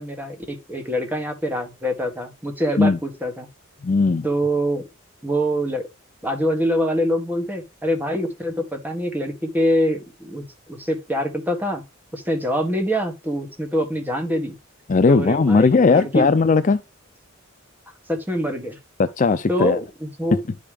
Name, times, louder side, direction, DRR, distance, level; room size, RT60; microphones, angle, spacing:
voice 1, 0.0-3.5 4.2-4.8 5.2-5.8 6.2-11.8 12.1-14.6 15.1-16.3 18.1-18.8 19.5-20.4, equal, 10° right, 1.5 m, -24 dB
voice 2, 3.8-4.3 14.9-16.8 19.0-19.8, left 4 dB, 35° left, 0.4 m, -17 dB
10.5 x 5.1 x 3.4 m
head